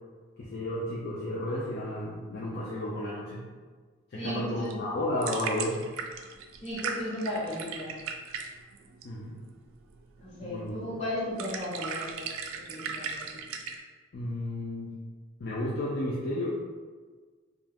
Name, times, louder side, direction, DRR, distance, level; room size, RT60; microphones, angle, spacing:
voice 1, 0.4-3.4 4.1-5.8 9.0-9.4 10.4-11.0 14.1-15.0 15.4-16.6, left 1 dB, 50° left, -6 dB, 0.4 m, -32 dB
voice 2, 4.1-4.8 6.6-7.9 10.2-13.4, left 1 dB, 30° left, -8 dB, 0.9 m, -35 dB
sound 1, 4.5-13.8, right 6 dB, 85° right, 0.3 m, -38 dB
2.3 x 2.2 x 3.3 m, 1.5 s
head